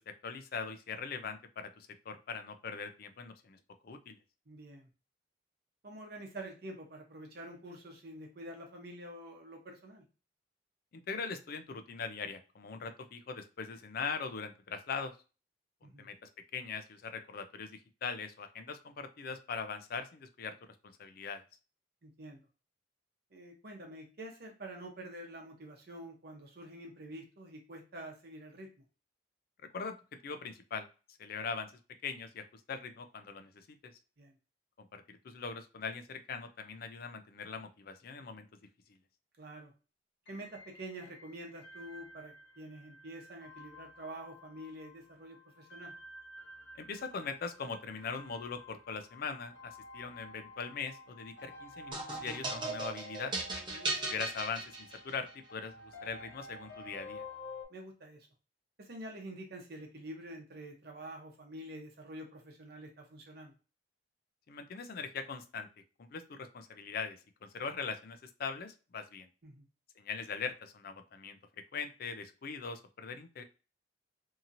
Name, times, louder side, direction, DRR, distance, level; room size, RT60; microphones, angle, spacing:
voice 1, 0.0-3.6 3.8-4.2 10.9-15.1 15.8-20.5 20.8-21.4 29.7-30.0 30.2-30.9 31.2-31.7 32.0-33.7 34.8-38.5 46.8-53.3 54.0-57.2 64.5-65.7 66.0-69.3 70.0-71.4 71.7-73.4, left 5 dB, 55° left, 8 dB, 0.4 m, -41 dB
voice 2, 4.5-4.9 5.8-10.0 15.8-16.1 22.0-22.5 23.3-28.7 34.2-34.4 39.4-39.7 40.3-45.9 53.7-53.9 57.7-58.3 58.8-63.5 69.4-69.6, right 1 dB, 60° right, 2 dB, 0.8 m, -47 dB
sound 1, 40.3-57.6, left 1 dB, 75° left, 0.8 m, -51 dB
sound 2, 51.9-55.3, right 2 dB, 25° right, 0.8 m, -37 dB
2.8 x 2.7 x 2.6 m, 0.33 s
head